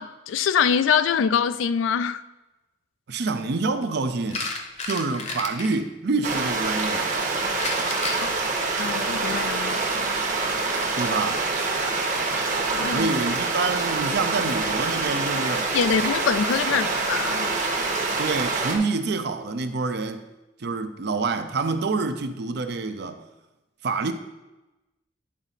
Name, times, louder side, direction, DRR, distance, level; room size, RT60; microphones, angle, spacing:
voice 1, 0.0-2.2 8.2-8.4 8.8-10.1 12.7-13.1 15.7-17.5, left 7 dB, 80° left, 0.3 m, -24 dB
voice 2, 3.1-4.5 4.8-7.1 11.0-11.5 12.9-15.7 18.2-20.2 20.6-23.2 23.8-24.1, right 3 dB, 60° right, 0.5 m, -27 dB
sound 1, 4.3-5.8 7.6-9.9 11.1-11.3, left 3 dB, 35° left, 0.8 m, -33 dB
sound 2, 6.2-18.8, right 3 dB, 45° right, 1.0 m, -26 dB
10.5 x 4.0 x 4.1 m
head